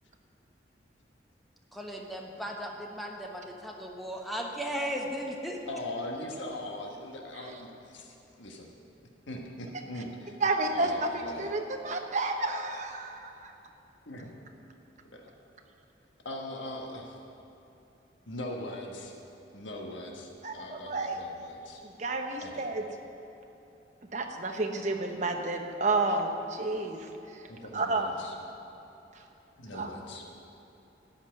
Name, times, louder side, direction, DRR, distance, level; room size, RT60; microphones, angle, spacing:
voice 1, 1.7-5.6, equal, ahead, 0 dB, 1.1 m, -36 dB
voice 2, 5.7-8.7 9.3-10.4 10.7-11.5 14.1-14.3 15.0-15.2 16.2-17.2 18.3-19.1 19.5-21.8 22.4-22.6 27.5-28.3 29.6-30.2, left 1 dB, 90° left, 1 dB, 1.4 m, -40 dB
voice 3, 10.4-13.5 20.4-21.2 21.8-22.8 24.1-27.1 27.7-28.1 29.7-29.9, right 2 dB, 40° right, 3 dB, 1.0 m, -30 dB
13.0 x 5.8 x 9.4 m, 2.9 s
head